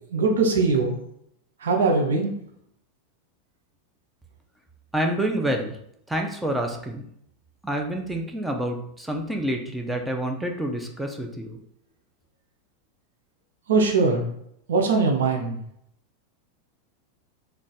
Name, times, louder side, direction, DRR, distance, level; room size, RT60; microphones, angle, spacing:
voice 1, 0.1-1.0 1.6-2.3 13.7-14.3 14.7-15.6, right 4 dB, 85° right, 2 dB, 0.6 m, -21 dB
voice 2, 4.9-5.8 6.1-7.0 7.6-11.6, right 1 dB, 5° right, 2 dB, 0.5 m, -28 dB
2.4 x 2.2 x 3.9 m, 0.71 s
hypercardioid pair, 105°, 0 cm